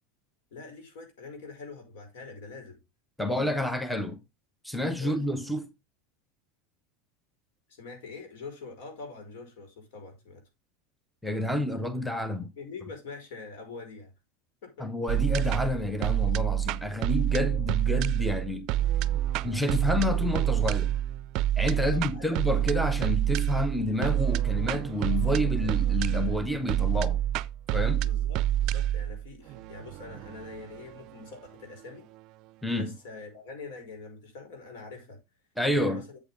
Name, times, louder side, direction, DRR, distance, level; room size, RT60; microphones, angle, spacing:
voice 1, 0.5-2.8 5.0-5.3 7.7-10.4 12.5-14.1 14.6-14.9 21.7-22.3 28.0-32.1 32.7-35.2 35.7-36.2, left 4 dB, 70° left, 5.0 m, -44 dB
voice 2, 3.2-4.2 4.6-5.6 11.2-12.5 14.8-18.7 19.4-20.9 21.6-27.2 27.7-28.1 32.6-32.9 35.6-36.0, left 1 dB, ahead, 0.7 m, -29 dB
Five Shaolin Masters Intro, 15.1-32.2, right 12 dB, 50° right, 0.4 m, -28 dB
8.1 x 8.0 x 3.5 m
supercardioid pair, 135°, 0 cm